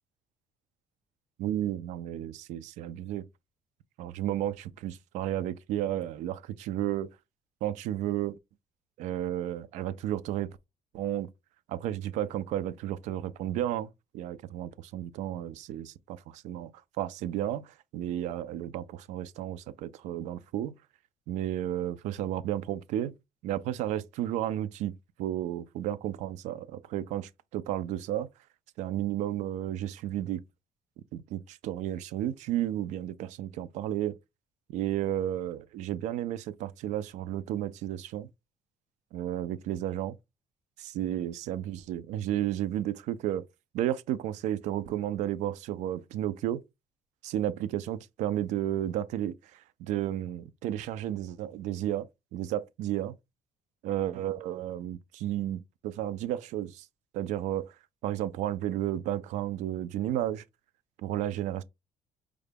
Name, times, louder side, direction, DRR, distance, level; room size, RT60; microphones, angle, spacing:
voice 1, 1.4-3.3 4.0-7.1 7.6-8.3 9.0-10.5 10.9-11.3 11.7-13.9 14.1-16.7 17.0-20.8 21.3-23.1 23.4-28.3 28.8-30.4 31.1-34.2 34.7-38.3 39.1-40.2 40.8-43.4 43.7-46.6 47.2-53.1 53.8-56.8 57.1-57.7 58.0-60.4 61.0-61.6, right 12 dB, 80° right, 0.4 m, -32 dB
4.8 x 2.2 x 3.3 m
cardioid pair, 170°, 12 cm